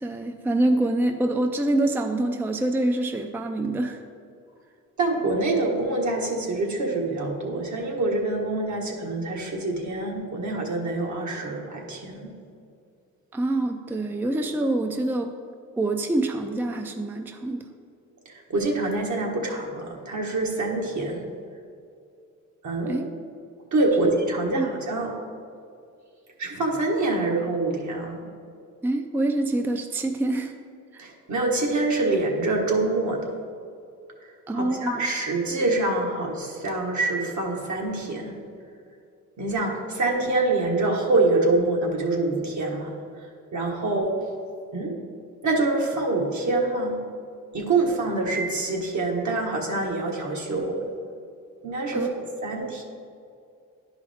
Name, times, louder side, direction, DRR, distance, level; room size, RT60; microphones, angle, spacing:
voice 1, 0.0-4.0 13.3-15.3 15.8-17.6 22.9-23.1 24.0-24.1 24.5-24.7 28.8-30.5 30.9-31.0 34.5-35.0 51.9-52.1, right 2 dB, 5° right, 5 dB, 0.4 m, -25 dB
voice 2, 5.0-12.3 18.2-21.3 22.6-23.0 23.7-25.1 26.4-28.2 31.0-33.3 34.5-38.4 39.4-42.9 43.2-44.2 44.7-45.0 45.4-47.0 47.5-50.8 51.6-52.8, right 2 dB, 60° right, 0 dB, 1.5 m, -25 dB
11.0 x 4.9 x 3.5 m, 2.4 s
cardioid pair, 90°, 33 cm